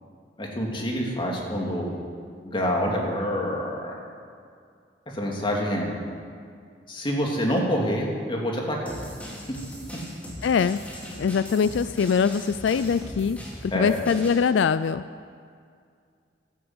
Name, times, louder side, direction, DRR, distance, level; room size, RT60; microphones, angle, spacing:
voice 1, 0.4-1.9 2.4-3.9 5.1-5.9 6.9-8.9 13.7-13.9, equal, 30° left, -1 dB, 2.6 m, -27 dB
sound 1, 8.9-14.4, equal, 10° left, 3.2 m, -39 dB
voice 2, 10.4-10.8 11.2-13.4 13.6-15.0, left 6 dB, 85° left, 14 dB, 0.4 m, -23 dB
13.0 x 11.5 x 8.0 m, 2.2 s
head